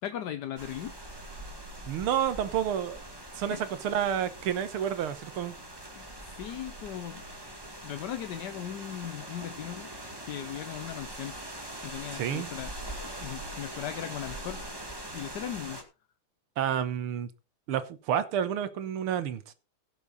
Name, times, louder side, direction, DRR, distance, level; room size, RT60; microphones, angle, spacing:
voice 1, 0.0-0.9 3.5-3.7 6.0-7.2 7.8-9.9 10.2-11.3 11.8-12.7 13.2-14.6 15.1-15.8, left 11 dB, 65° left, 1.2 m, -38 dB
sound 1, 0.6-15.8, right 1 dB, 10° right, 1.7 m, -42 dB
voice 2, 1.9-3.0 3.4-5.5 12.1-12.5 16.6-17.3 17.7-19.5, right 9 dB, 85° right, 2.0 m, -30 dB
16.5 x 7.0 x 4.0 m
omnidirectional pair, 2.4 m